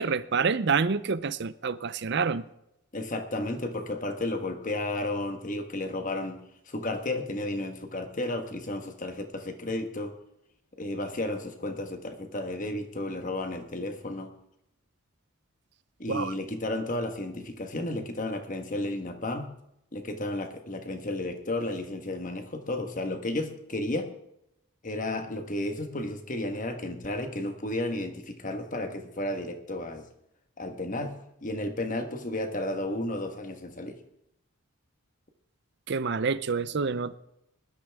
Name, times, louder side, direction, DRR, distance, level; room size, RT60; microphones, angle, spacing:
voice 1, 0.0-2.5 16.1-16.3 35.9-37.2, right 5 dB, 50° right, 0.5 m, -27 dB
voice 2, 2.9-10.1 10.8-14.3 16.0-19.5 19.9-24.1 24.8-30.0 30.6-31.2 31.4-34.0, left 1 dB, 35° left, 1.4 m, -33 dB
19.5 x 12.0 x 3.6 m
head